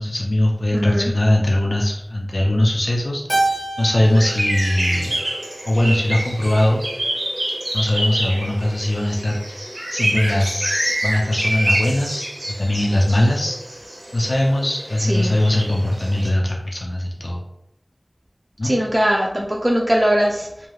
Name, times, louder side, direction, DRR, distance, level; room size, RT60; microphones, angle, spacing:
voice 1, 0.0-5.2 5.7-6.8 7.7-12.3 12.6-13.6 14.1-17.4 18.6-18.7, left 1 dB, 65° left, -1 dB, 0.4 m, -20 dB
voice 2, 0.7-1.1 15.1-15.3 18.6-20.7, equal, 25° right, -2 dB, 0.3 m, -20 dB
Keyboard (musical), 3.3-5.8, right 2 dB, 20° left, 0.7 m, -27 dB
sound 1, 4.0-16.3, right 1 dB, 85° right, 0.6 m, -27 dB
2.4 x 2.3 x 3.1 m, 0.82 s
wide cardioid pair, 40°, 0 cm